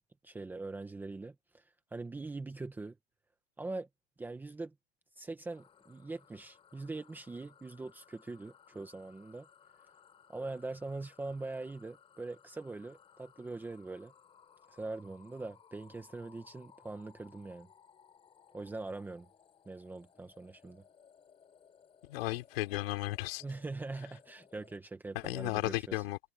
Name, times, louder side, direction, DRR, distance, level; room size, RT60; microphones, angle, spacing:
voice 1, 0.2-1.6 1.9-2.9 3.6-3.9 4.2-4.7 5.2-9.5 10.3-14.1 14.7-17.7 18.5-19.3 19.6-20.8 23.4-25.9, right 3 dB, 5° right, 1.2 m, -42 dB
sound 1, 5.4-24.8, left 7 dB, 15° left, 7.2 m, -62 dB
voice 2, 22.1-23.4 25.2-26.2, left 19 dB, 55° left, 3.5 m, -34 dB
supercardioid pair, 175°, 35 cm